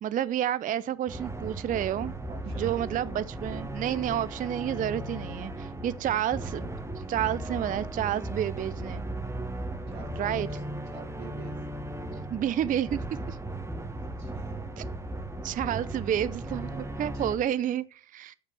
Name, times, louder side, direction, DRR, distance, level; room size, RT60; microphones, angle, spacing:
voice 1, 0.0-2.1 2.5-9.0 10.2-10.5 12.3-13.4 14.8-14.9 15.4-18.3, right 10 dB, 25° right, 0.6 m, -30 dB
sound 1, 1.1-17.4, right 1 dB, 10° right, 1.5 m, -36 dB
voice 2, 2.3-3.3 6.3-6.4 9.9-10.6 10.9-11.6 13.6-14.6 17.1-17.7, right 5 dB, 85° right, 2.8 m, -48 dB
8.5 x 6.7 x 7.8 m
hypercardioid pair, 75°, 30 cm